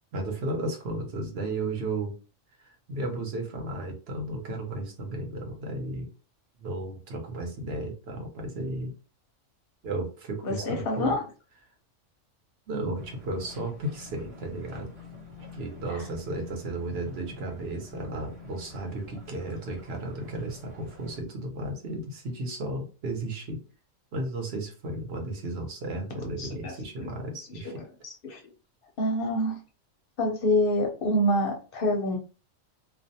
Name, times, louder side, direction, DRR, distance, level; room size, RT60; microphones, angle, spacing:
voice 1, 0.1-2.2 2.6-6.1 6.6-8.9 9.8-11.2 12.7-14.9 15.5-23.6 24.1-27.8, right 2 dB, 55° right, 2 dB, 0.9 m, -34 dB
voice 2, 10.4-11.2 26.4-27.1 27.6-27.7 28.0-28.4 29.0-29.6 30.2-32.2, left 1 dB, 55° left, 2 dB, 0.7 m, -27 dB
sound 1, 12.9-21.2, left 3 dB, 30° right, 0.7 m, -47 dB
2.4 x 2.1 x 2.7 m, 0.34 s
omnidirectional pair, 1.4 m